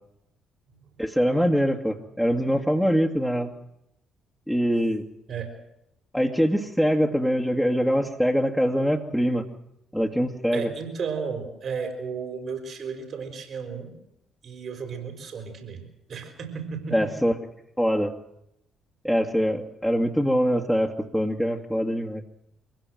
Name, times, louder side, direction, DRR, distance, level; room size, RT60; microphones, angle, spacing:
voice 1, 1.0-3.5 4.5-5.0 6.1-9.4 9.9-10.7 16.9-17.3 17.8-18.1 19.0-22.2, equal, ahead, 0 dB, 2.3 m, -23 dB
voice 2, 10.5-13.9 14.4-15.8 16.1-17.0, right 5 dB, 55° right, 7 dB, 5.4 m, -33 dB
24.0 x 16.5 x 7.8 m, 0.83 s
hypercardioid pair, 50°, 0 cm